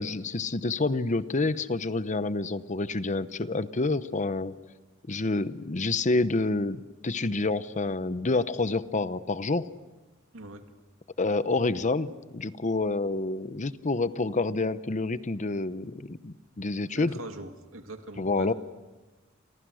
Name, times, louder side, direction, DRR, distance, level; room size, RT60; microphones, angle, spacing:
voice 1, 0.0-4.5 5.1-9.7 11.2-17.1 18.2-18.5, left 3 dB, 35° left, 14 dB, 0.8 m, -28 dB
voice 2, 10.3-10.7 16.9-18.5, right 2 dB, 85° right, 6 dB, 2.5 m, -42 dB
30.0 x 28.0 x 6.4 m, 1.2 s
head